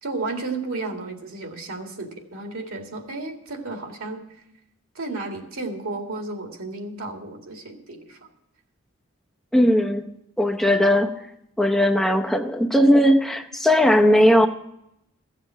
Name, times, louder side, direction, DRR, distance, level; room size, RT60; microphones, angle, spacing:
voice 1, 0.0-4.2 4.9-8.2, right 3 dB, 80° right, 3 dB, 2.1 m, -33 dB
voice 2, 9.5-10.1 10.4-11.1 11.6-14.5, equal, ahead, 4 dB, 0.8 m, -18 dB
14.5 x 7.4 x 7.4 m, 0.81 s
head